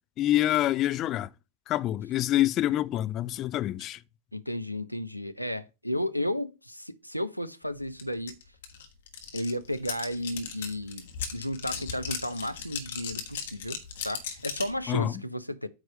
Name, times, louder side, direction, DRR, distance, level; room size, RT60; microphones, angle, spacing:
voice 1, 0.2-1.3 1.7-4.0 14.9-15.2, left 13 dB, 35° left, 0.4 m, -26 dB
voice 2, 4.3-8.3 9.3-11.1 11.3-13.8 14.0-15.7, left 1 dB, 90° left, 0.6 m, -33 dB
sound 1, 8.0-8.1 8.3-14.8, left 7 dB, 60° left, 1.4 m, -37 dB
8.9 x 3.1 x 6.5 m
figure-of-eight pair, 90°, 0 cm